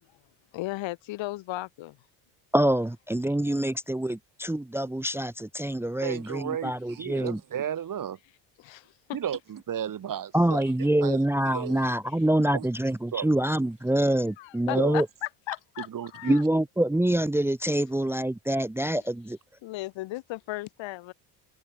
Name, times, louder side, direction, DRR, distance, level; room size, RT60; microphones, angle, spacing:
voice 1, 0.5-2.0 8.6-8.9 11.7-11.8 14.4-16.4 18.9-19.0 19.6-21.1, left 18 dB, 75° left, 5.6 m, -36 dB
voice 2, 2.5-7.4 10.3-15.1 16.2-19.4, right 1 dB, 5° right, 1.0 m, -25 dB
voice 3, 6.0-8.2 9.1-10.7 11.0-11.8 12.5-12.7 13.1-13.3 14.7-15.0 15.9-16.4, right 9 dB, 45° right, 2.2 m, -33 dB
supercardioid pair, 85°, 46 cm